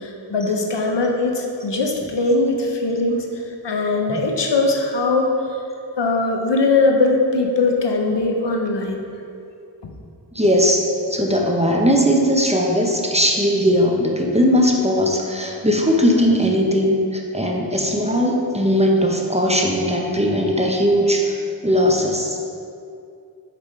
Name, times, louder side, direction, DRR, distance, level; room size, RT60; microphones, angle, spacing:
voice 1, 0.0-3.3 3.6-5.3 6.0-9.1, left 3 dB, 70° left, 2 dB, 0.7 m, -20 dB
voice 2, 10.4-10.8 11.1-21.3 21.6-22.4, equal, 15° right, 0 dB, 0.7 m, -18 dB
5.4 x 4.8 x 4.2 m, 2.5 s
wide cardioid pair, 50°, 44 cm